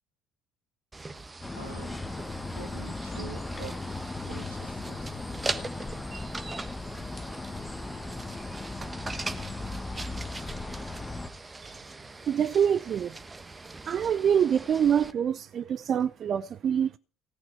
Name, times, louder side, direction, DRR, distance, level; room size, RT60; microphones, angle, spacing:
sound 1, 0.9-15.1, right 3 dB, 20° right, 1.3 m, -41 dB
sound 2, 1.4-11.3, left 2 dB, 15° left, 1.6 m, -37 dB
voice 1, 1.5-2.0 2.5-3.8 4.2-5.2, right 3 dB, 90° right, 2.2 m, -45 dB
voice 2, 12.3-13.1 13.9-17.0, right 8 dB, 45° right, 0.5 m, -25 dB
17.5 x 6.0 x 8.2 m
figure-of-eight pair, 55°, 0 cm